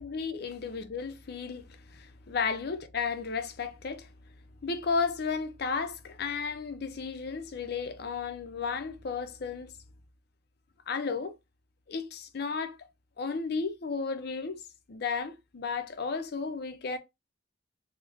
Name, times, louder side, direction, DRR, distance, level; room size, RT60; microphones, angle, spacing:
voice 1, 0.0-1.6 1.9-4.1 4.6-9.7 10.9-11.3 11.9-12.8 13.2-14.6 14.9-17.0, left 5 dB, 55° left, 0.5 m, -33 dB
3.3 x 2.0 x 3.4 m
head